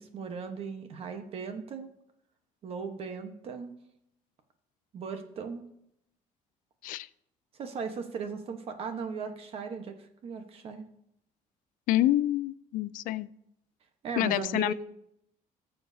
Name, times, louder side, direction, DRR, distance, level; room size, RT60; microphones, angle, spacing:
voice 1, 0.0-1.9 2.6-3.7 4.9-5.6 7.5-10.8 14.0-14.7, right 5 dB, 45° right, 7 dB, 1.1 m, -37 dB
voice 2, 11.9-13.3 14.2-14.7, left 14 dB, 80° left, 17 dB, 0.4 m, -27 dB
18.0 x 7.1 x 2.7 m, 0.77 s
cardioid pair, 180°, 14 cm